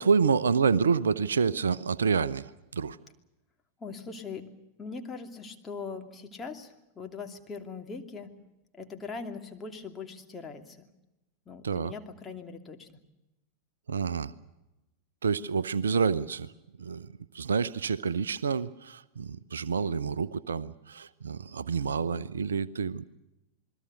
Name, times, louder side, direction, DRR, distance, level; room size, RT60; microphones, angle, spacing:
voice 1, 0.0-3.0 11.6-11.9 13.9-14.3 15.2-16.5 16.8-23.0, right 5 dB, 70° right, 17 dB, 0.7 m, -28 dB
voice 2, 3.8-4.5 4.8-8.3 8.7-10.9 11.5-13.0, left 4 dB, 20° left, 3 dB, 2.8 m, -41 dB
28.0 x 21.5 x 6.7 m, 0.95 s
figure-of-eight pair, 90°, 0 cm